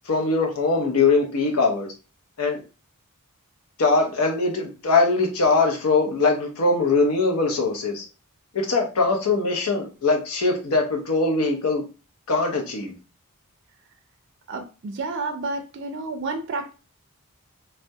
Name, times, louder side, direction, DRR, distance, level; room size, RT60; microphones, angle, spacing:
voice 1, 0.1-1.9 2.4-2.6 3.8-8.0 8.5-11.8 12.3-12.9, left 3 dB, 85° left, 2 dB, 0.6 m, -21 dB
voice 2, 14.5-16.7, right 3 dB, 55° right, 5 dB, 0.4 m, -30 dB
2.2 x 2.1 x 2.6 m, 0.32 s
head